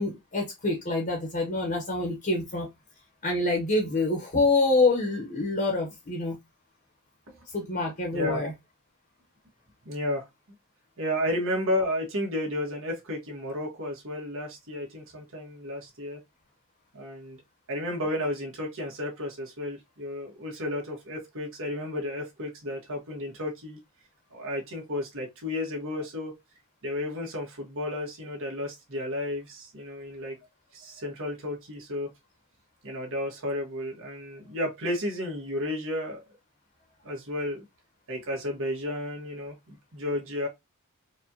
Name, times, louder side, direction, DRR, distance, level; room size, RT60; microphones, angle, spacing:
voice 1, 0.0-2.7 3.2-6.4 7.5-8.5, left 2 dB, 40° left, 1.0 m, -26 dB
voice 2, 8.1-8.5 9.8-10.2 11.0-16.2 16.9-17.4 17.7-23.8 24.3-26.3 26.8-30.4 30.7-32.1 32.8-36.2 37.0-37.6 38.1-40.5, left 1 dB, 65° right, 1.5 m, -32 dB
4.6 x 2.4 x 2.8 m
head